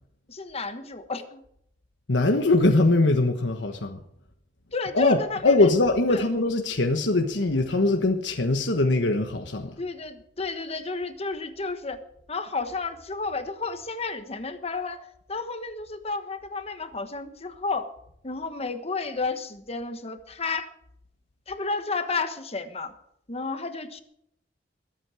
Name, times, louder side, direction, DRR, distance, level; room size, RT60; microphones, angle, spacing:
voice 1, 0.3-1.4 4.7-5.7 6.1-6.2 9.8-12.0 12.3-17.9 18.2-20.7 21.5-22.9 23.3-24.0, left 3 dB, 35° left, 9 dB, 1.3 m, -31 dB
voice 2, 2.1-4.0 4.9-9.7, left 2 dB, 80° left, 4 dB, 1.3 m, -22 dB
21.5 x 8.8 x 5.0 m, 0.73 s
head